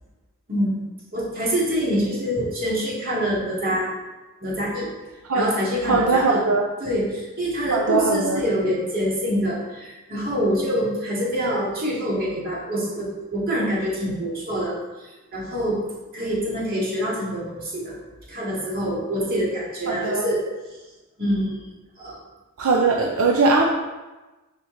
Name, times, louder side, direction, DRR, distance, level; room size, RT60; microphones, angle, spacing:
voice 1, 1.1-3.9 4.4-4.9 5.3-6.4 6.8-15.8 16.1-18.0 18.3-20.4 21.2-21.6 22.0-22.2, equal, 45° right, -6 dB, 2.1 m, -25 dB
voice 2, 5.8-6.7 7.7-8.4 19.9-20.3 22.6-23.6, right 3 dB, 75° right, 0 dB, 0.6 m, -20 dB
6.4 x 4.4 x 3.8 m, 1.1 s
head